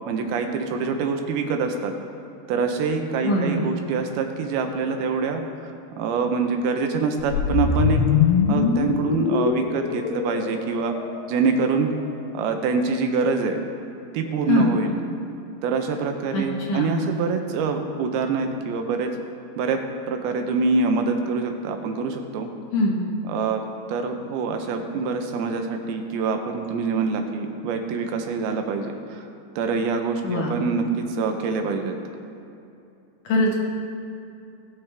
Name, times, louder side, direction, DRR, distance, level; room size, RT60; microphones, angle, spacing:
voice 1, 0.1-1.9 2.5-8.0 8.5-10.9 11.3-11.9 12.3-13.6 14.1-15.0 15.6-19.1 19.6-19.8 20.1-22.5 23.3-23.6 23.9-29.3 29.6-32.0, right 4 dB, 80° right, 5 dB, 2.6 m, -25 dB
voice 2, 3.2-3.6 14.5-14.7 16.3-17.1 22.7-23.0 30.2-30.6 33.2-33.6, left 2 dB, 65° left, -2 dB, 2.5 m, -22 dB
sound 1, 7.3-11.5, left 7 dB, 85° left, 2.6 m, -23 dB
19.0 x 6.8 x 3.4 m, 2.7 s
omnidirectional pair, 4.5 m